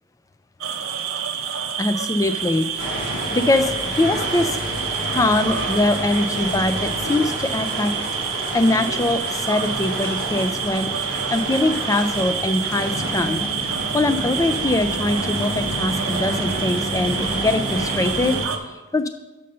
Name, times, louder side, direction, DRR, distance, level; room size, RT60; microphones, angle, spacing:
sound 1, 0.6-18.6, right 8 dB, 65° right, 0.6 m, -28 dB
voice 1, 1.4-2.9 3.3-4.6 5.1-7.9 8.5-18.4 18.9-19.1, left 2 dB, 15° left, 10 dB, 0.3 m, -22 dB
sound 2, 2.8-18.4, equal, 75° left, 2.3 m, -29 dB
6.5 x 5.3 x 5.4 m, 1.1 s
head